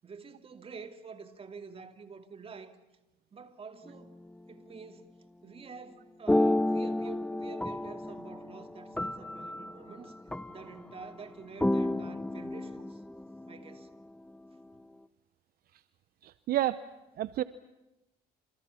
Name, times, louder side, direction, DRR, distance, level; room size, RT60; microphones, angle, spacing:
voice 1, 0.0-2.8 3.3-4.1 4.5-5.2 5.4-10.1 10.5-13.0 13.5-13.9, right 5 dB, 35° right, 2.7 m, -48 dB
sound 1, 3.9-4.3 6.3-11.2 11.6-13.9, left 1 dB, 5° left, 0.9 m, -31 dB
voice 2, 16.2-16.8 17.2-17.4, right 13 dB, 60° right, 0.8 m, -29 dB
28.5 x 28.0 x 5.7 m
cardioid pair, 110°, 17 cm